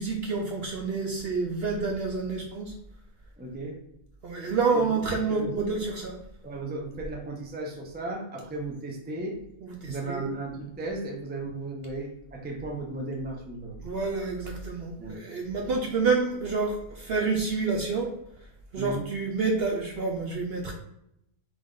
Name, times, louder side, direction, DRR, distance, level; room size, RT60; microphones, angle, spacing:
voice 1, 0.0-2.7 4.2-6.1 9.6-10.3 13.8-18.1 18.7-20.7, right 4 dB, 60° right, 1 dB, 0.7 m, -28 dB
voice 2, 3.4-3.8 4.7-4.8 5.3-5.7 6.4-9.4 9.9-13.8 15.0-15.2 18.8-19.1, right 2 dB, 10° right, 0 dB, 0.4 m, -35 dB
3.8 x 3.4 x 3.7 m, 0.78 s
omnidirectional pair, 1.5 m